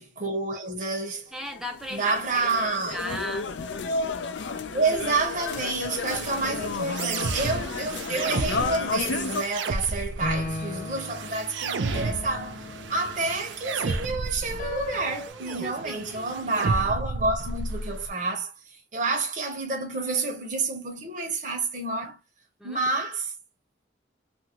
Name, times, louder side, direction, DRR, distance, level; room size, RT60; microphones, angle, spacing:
voice 1, 0.0-1.3 1.9-3.0 4.7-22.2 22.6-23.3, right 3 dB, 40° right, 0.9 m, -29 dB
voice 2, 1.3-2.5 2.9-3.6 15.3-16.6 22.6-22.8, left 1 dB, 5° right, 0.6 m, -37 dB
sound 1, 1.4-9.4, left 4 dB, 70° left, 0.4 m, -32 dB
sound 2, 6.1-18.1, right 3 dB, 70° right, 0.4 m, -33 dB
sound 3, 10.2-15.3, left 2 dB, 45° left, 0.8 m, -37 dB
2.7 x 2.6 x 2.9 m
head